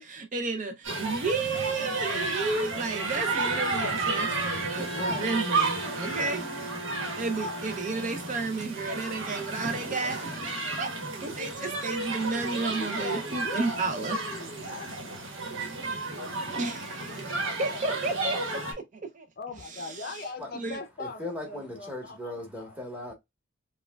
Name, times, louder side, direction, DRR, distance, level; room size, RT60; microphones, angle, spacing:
voice 1, 0.0-6.4 7.2-10.9 11.2-14.2 16.5-18.8 19.1-19.3 19.7-20.0 20.5-20.8, right 3 dB, 40° right, 0.4 m, -32 dB
sound 1, 0.8-18.7, right 3 dB, 85° right, 1.1 m, -32 dB
Bowed string instrument, 2.6-8.8, right 1 dB, 65° right, 1.3 m, -40 dB
voice 2, 4.9-5.3 6.2-6.4 12.7-15.1 19.4-22.8, left 3 dB, 50° left, 0.5 m, -40 dB
voice 3, 21.0-23.1, left 1 dB, 5° right, 1.2 m, -38 dB
4.6 x 2.2 x 2.2 m
head